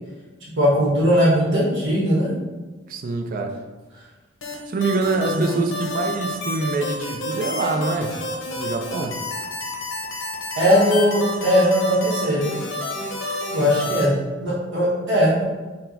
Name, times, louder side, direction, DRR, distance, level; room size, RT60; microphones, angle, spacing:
voice 1, 0.6-2.3 5.3-5.6 10.6-12.5 13.5-14.1 14.4-15.4, equal, 65° right, -6 dB, 1.2 m, -19 dB
voice 2, 2.9-3.6 4.7-8.2 8.6-9.2, right 3 dB, 45° right, 4 dB, 0.4 m, -25 dB
sound 1, 4.4-14.1, left 2 dB, 85° left, 0.8 m, -30 dB
4.4 x 2.1 x 4.0 m, 1.3 s
head